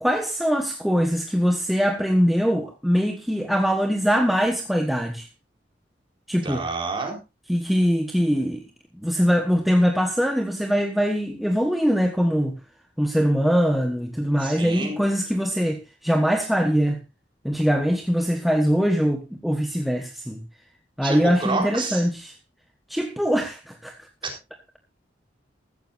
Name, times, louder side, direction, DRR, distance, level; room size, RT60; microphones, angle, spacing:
voice 1, 0.0-5.3 6.3-6.6 7.5-8.6 9.0-12.6 13.0-17.0 17.4-20.4 21.0-22.4 22.9-23.9, equal, ahead, 1.2 m, -22 dB
voice 2, 6.4-7.2 14.4-15.0 21.0-22.0 24.2-24.3, right 3 dB, 30° right, 4.2 m, -29 dB
14.5 x 14.5 x 2.6 m
head